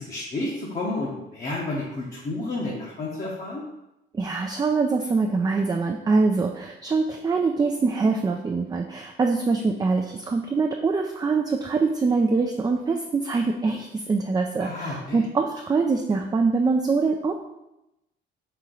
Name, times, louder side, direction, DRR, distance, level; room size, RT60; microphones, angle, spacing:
voice 1, 0.0-3.6 14.6-15.2, left 2 dB, 40° left, -5 dB, 0.9 m, -31 dB
voice 2, 4.1-17.3, right 4 dB, 20° right, 3 dB, 0.3 m, -24 dB
4.4 x 2.9 x 3.7 m, 0.91 s
cardioid pair, 90°, 20 cm